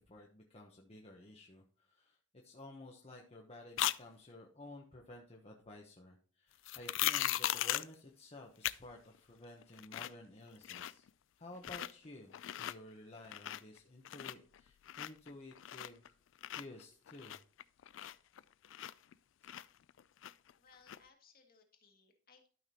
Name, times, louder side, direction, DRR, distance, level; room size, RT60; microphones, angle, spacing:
voice 1, 0.0-11.0 11.4-16.1 16.5-17.4, left 2 dB, 35° left, 0 dB, 1.0 m, -53 dB
sound 1, 3.8-4.0 6.6-7.9 8.6-8.8 9.1-9.2 9.6-10.2 10.5-11.1 11.5-11.9 12.3-12.7 13.2-13.8 14.0-16.1 16.4-19.1 19.4-20.5 20.9-21.0, left 13 dB, 90° left, 0.4 m, -38 dB
voice 2, 20.6-22.5, left 5 dB, 50° left, 4 dB, 1.7 m, -65 dB
12.5 x 5.8 x 2.9 m, 0.43 s
head